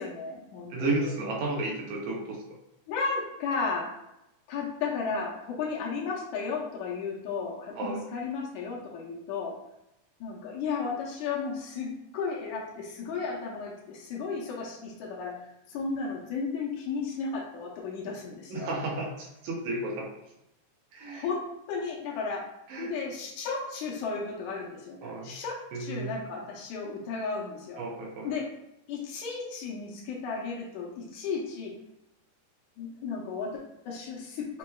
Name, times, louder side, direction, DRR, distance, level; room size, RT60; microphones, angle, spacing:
voice 1, 0.0-1.1 2.9-3.9 4.5-9.6 10.2-15.3 15.7-18.7 21.1-21.4 21.7-22.4 22.8-27.8 28.2-28.5 28.9-31.7 32.8-34.6, left 4 dB, 80° left, -2 dB, 2.1 m, -34 dB
voice 2, 0.7-2.4 7.8-8.0 18.5-20.1 20.9-21.3 22.7-22.9 25.0-25.3 25.7-26.1 27.8-28.3, right 2 dB, 75° right, -2 dB, 2.0 m, -32 dB
5.4 x 2.9 x 2.2 m, 0.84 s
omnidirectional pair, 3.6 m